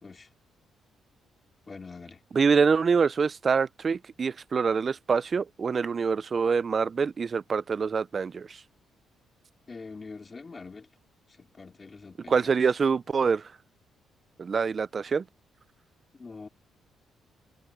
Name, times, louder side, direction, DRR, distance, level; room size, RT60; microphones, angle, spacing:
voice 1, 1.7-2.2 9.7-10.9 11.4-12.6 16.1-16.5, left 4 dB, 30° left, 4.1 m, -44 dB
voice 2, 2.3-8.6 12.3-13.5 14.4-15.3, right 5 dB, 40° right, 0.4 m, -25 dB
cardioid pair, 90°, 0 cm